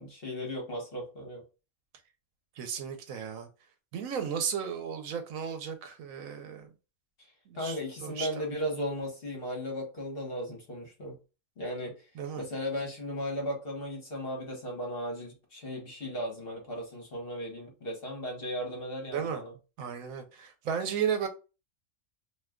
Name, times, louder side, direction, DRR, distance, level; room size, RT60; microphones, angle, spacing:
voice 1, 0.0-1.4 7.5-11.2 11.6-11.9 12.4-19.5, equal, 50° left, 1.2 m, -36 dB
voice 2, 2.6-3.5 3.9-6.7 7.5-8.4 12.2-12.4 19.1-19.4 19.8-21.3, right 7 dB, 85° right, 1.1 m, -34 dB
2.7 x 2.3 x 3.5 m
omnidirectional pair, 1.4 m